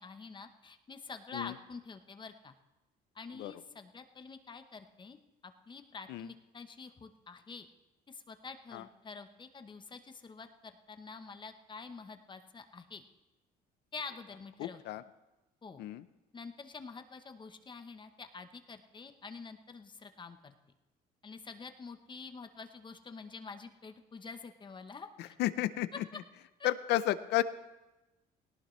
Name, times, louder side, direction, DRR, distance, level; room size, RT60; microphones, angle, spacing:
voice 1, 0.0-2.5 3.1-7.7 8.1-13.0 13.9-14.8 15.6-15.8 16.3-20.5 21.2-25.4 26.6-26.7, left 4 dB, 30° left, 8 dB, 0.9 m, -47 dB
voice 2, 14.6-15.0 15.8-16.0 25.2-25.9 26.6-27.4, left 15 dB, 80° left, 14 dB, 0.7 m, -32 dB
18.5 x 18.0 x 3.2 m, 1.0 s
cardioid pair, 110°, 17 cm